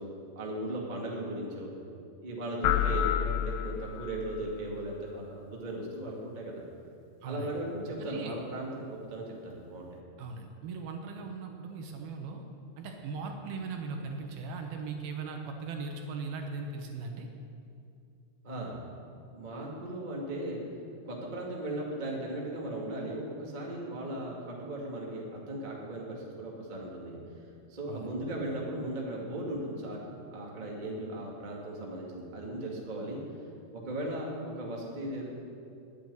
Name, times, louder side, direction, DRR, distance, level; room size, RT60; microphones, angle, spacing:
voice 1, 0.0-1.7 2.2-6.6 7.2-9.9 18.4-18.8 19.3-20.6 21.1-27.2 27.7-33.2 33.7-35.3, right 1 dB, 35° right, -3 dB, 0.7 m, -37 dB
sound 1, 2.6-4.2, left 10 dB, 85° left, 2.9 m, -28 dB
voice 2, 7.2-7.5 8.0-8.3 10.2-12.4 12.8-17.3 27.9-28.1, right 4 dB, 70° right, 3 dB, 2.7 m, -39 dB
10.5 x 9.1 x 9.5 m, 2.5 s
omnidirectional pair, 4.9 m